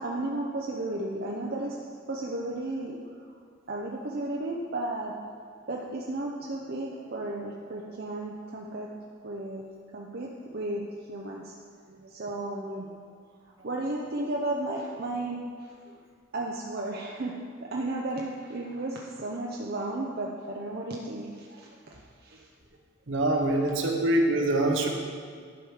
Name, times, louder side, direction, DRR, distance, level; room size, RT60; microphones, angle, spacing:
voice 1, 0.0-1.8 2.1-3.1 3.7-5.1 5.7-8.9 9.2-9.6 9.9-10.8 11.1-11.5 11.9-13.0 13.6-15.4 16.3-22.5, right 2 dB, 50° right, -2 dB, 0.6 m, -34 dB
voice 2, 23.1-24.9, right 1 dB, 65° right, 2 dB, 1.0 m, -24 dB
11.0 x 4.8 x 4.9 m, 2.1 s
head